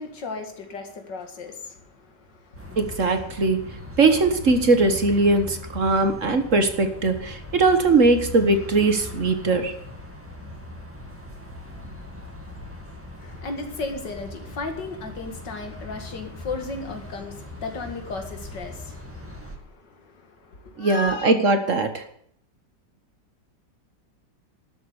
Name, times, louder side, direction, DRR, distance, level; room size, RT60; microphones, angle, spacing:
voice 1, 0.0-2.8 13.2-21.3, left 3 dB, 75° left, 6 dB, 2.6 m, -35 dB
sound 1, 2.6-19.6, left 1 dB, 5° right, 2.2 m, -40 dB
voice 2, 2.8-9.7 20.8-22.0, right 3 dB, 45° right, 8 dB, 1.7 m, -20 dB
12.5 x 8.0 x 9.7 m, 0.65 s
omnidirectional pair, 1.9 m